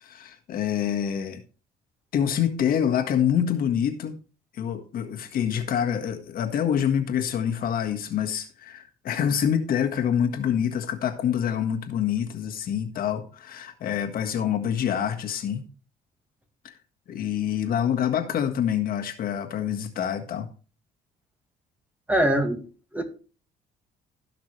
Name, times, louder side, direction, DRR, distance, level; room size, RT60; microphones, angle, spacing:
voice 1, 0.0-1.4 2.1-4.1 4.5-15.7 16.6-16.7 17.1-20.5, left 9 dB, 60° left, 1.6 m, -26 dB
voice 2, 22.1-22.6 22.9-23.0, right 1 dB, 10° right, 1.9 m, -22 dB
16.5 x 5.9 x 3.2 m
cardioid pair, 110°, 17 cm